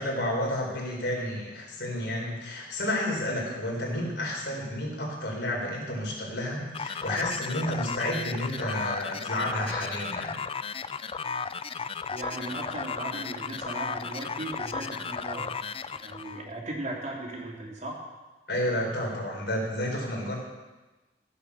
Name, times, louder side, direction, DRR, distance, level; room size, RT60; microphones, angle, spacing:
voice 1, 0.0-10.3 18.5-20.4, left 1 dB, 65° left, -2 dB, 4.6 m, -31 dB
sound 1, 6.7-16.5, left 5 dB, 30° left, 0.4 m, -35 dB
voice 2, 12.1-15.5 16.0-18.0, right 2 dB, 45° right, -2 dB, 3.3 m, -37 dB
15.5 x 8.5 x 7.0 m, 1.2 s
head